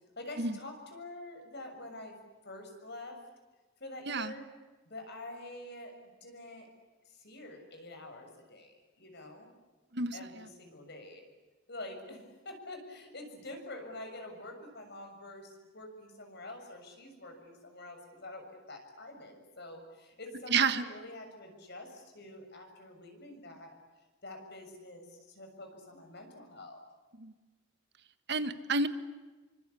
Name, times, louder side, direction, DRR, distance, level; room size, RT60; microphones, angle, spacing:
voice 1, 0.1-2.1 2.4-3.2 3.8-4.5 4.8-5.9 6.2-6.7 7.0-9.5 10.1-11.2 11.7-23.7 24.2-26.8, left 2 dB, 55° left, 5 dB, 6.8 m, -47 dB
voice 2, 9.9-10.4 20.5-20.8 27.2-27.3 28.3-28.9, right 4 dB, 60° right, 10 dB, 1.5 m, -30 dB
28.5 x 25.0 x 8.4 m, 1.2 s
head